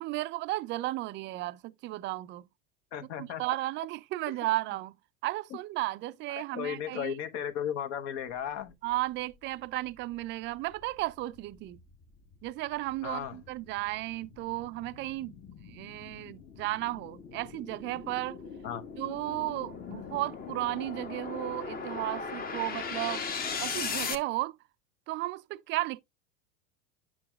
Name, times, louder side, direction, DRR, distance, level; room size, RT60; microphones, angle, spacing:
voice 1, 0.0-2.4 3.2-4.9 5.2-7.2 8.8-11.8 12.4-15.3 15.7-18.4 19.0-23.2 23.6-24.6 25.1-26.0, right 18 dB, 30° right, 0.4 m, -34 dB
voice 2, 2.9-3.4 6.4-8.7 13.0-13.4 18.6-18.8, left 9 dB, 60° left, 1.0 m, -35 dB
sound 1, 9.4-9.5 10.0-24.2, left 5 dB, 25° left, 0.8 m, -39 dB
8.5 x 6.1 x 2.2 m
hypercardioid pair, 95°, 40 cm